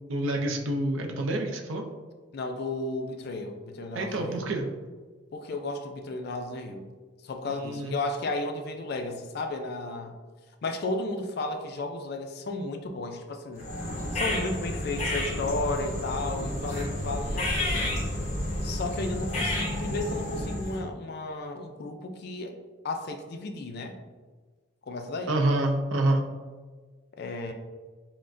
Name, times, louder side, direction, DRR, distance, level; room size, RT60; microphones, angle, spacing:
voice 1, 0.1-1.8 3.9-4.7 7.4-8.0 25.3-26.2, right 1 dB, 75° right, 3 dB, 0.5 m, -27 dB
voice 2, 2.3-4.4 5.3-6.9 7.2-10.2 10.6-13.7 14.1-18.0 18.6-22.6 22.8-24.0 24.8-25.4 27.2-27.5, left 2 dB, 50° left, 5 dB, 0.3 m, -33 dB
sound 1, 13.6-20.8, left 1 dB, 35° left, 0.7 m, -31 dB
5.7 x 2.1 x 2.5 m, 1.4 s
head